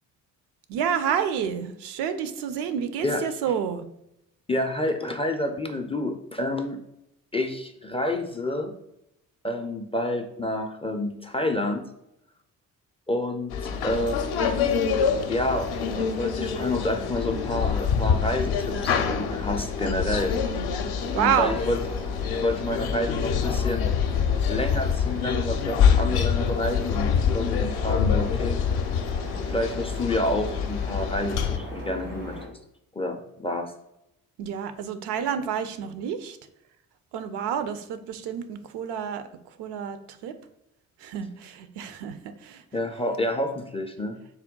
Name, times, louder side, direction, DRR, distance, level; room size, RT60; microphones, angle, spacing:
voice 1, 0.7-3.8 21.1-21.5 34.4-36.4 37.1-39.2 39.6-40.3 41.0-42.2 42.4-42.6, right 8 dB, 65° right, 10 dB, 0.5 m, -29 dB
voice 2, 4.5-6.8 7.3-8.8 9.4-11.8 13.1-13.5 13.8-14.2 15.3-20.4 21.1-21.8 22.3-23.9 24.5-28.6 29.5-32.4 33.0-33.7 42.7-44.2, left 1 dB, 15° left, 5 dB, 0.4 m, -29 dB
sound 1, 13.5-31.6, left 7 dB, 60° left, 0.6 m, -26 dB
sound 2, 13.6-32.5, equal, 85° right, 1.4 m, -39 dB
3.6 x 2.2 x 3.7 m, 0.81 s
hypercardioid pair, 45°, 43 cm